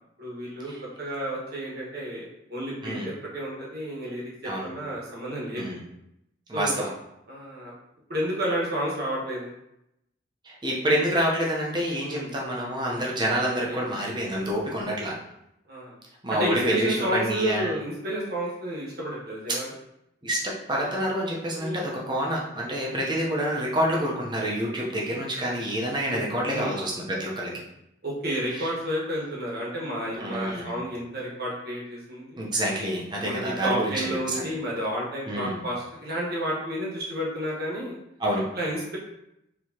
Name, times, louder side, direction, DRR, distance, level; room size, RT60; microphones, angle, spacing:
voice 1, 0.2-0.7 1.0-5.7 6.5-6.8 7.3-7.7 8.1-9.5 12.1-12.3 13.7-13.8 15.7-16.0 16.3-19.7 21.6-21.8 26.5-26.7 28.0-32.5 33.2-38.0 38.5-39.0, equal, 55° right, -4 dB, 1.3 m, -31 dB
voice 2, 6.5-6.9 10.4-15.1 16.2-17.7 20.2-27.5 28.5-28.7 30.2-30.7 32.4-34.5 35.3-35.6 38.2-38.4, equal, 25° right, -3 dB, 0.8 m, -27 dB
4.6 x 3.1 x 2.9 m, 0.83 s
head